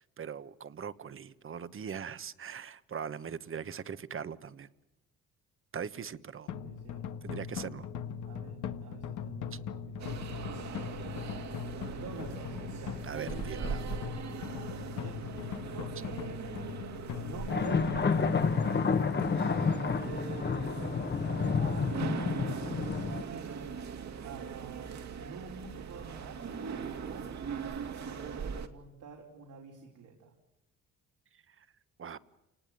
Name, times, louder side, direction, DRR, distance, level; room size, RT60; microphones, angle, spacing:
voice 1, 0.0-4.7 5.7-6.5 7.2-7.9 9.5-9.6 13.0-13.8 31.5-31.7 32.0-32.2, right 7 dB, 45° right, 1.3 m, -41 dB
sound 1, 6.5-19.3, left 7 dB, 80° left, 1.5 m, -40 dB
voice 2, 6.6-7.1 8.2-11.0 11.6-13.7 14.5-16.4 16.7-18.5 19.4-23.9 24.2-26.4 27.0-27.3 28.0-30.3, right 5 dB, 80° right, 4.8 m, -48 dB
sound 2, 10.0-28.7, right 6 dB, 65° right, 2.5 m, -41 dB
sound 3, 17.5-23.2, left 5 dB, 35° left, 1.4 m, -29 dB
29.0 x 19.5 x 9.4 m
cardioid pair, 90°, 30 cm